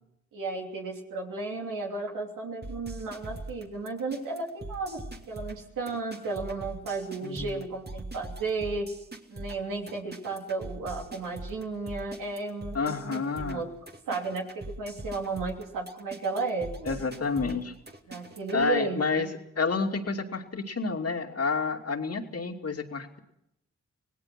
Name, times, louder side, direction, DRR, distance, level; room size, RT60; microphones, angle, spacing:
voice 1, 0.3-5.0 5.3-8.9 9.3-13.7 14.1-17.0 18.1-19.3, right 3 dB, 85° right, 0 dB, 3.1 m, -34 dB
sound 1, 2.6-18.6, right 2 dB, 30° right, 2.5 m, -42 dB
voice 2, 7.2-7.6 12.7-13.7 16.9-17.7 18.5-23.2, left 4 dB, 50° left, 4 dB, 2.7 m, -29 dB
26.0 x 18.0 x 6.1 m, 0.80 s
supercardioid pair, 40°, 31 cm